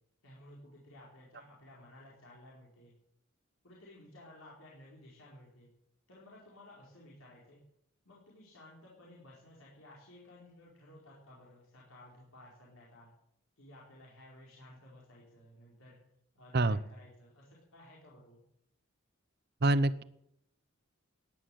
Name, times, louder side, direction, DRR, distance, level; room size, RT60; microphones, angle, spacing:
voice 1, 0.2-2.9 3.6-5.7 6.1-7.6 8.0-13.1 13.6-16.0 16.3-18.4, left 1 dB, 75° left, -5 dB, 4.6 m, -56 dB
voice 2, 19.6-20.0, right 2 dB, 50° right, 16 dB, 0.8 m, -26 dB
16.5 x 10.5 x 7.8 m, 0.77 s
head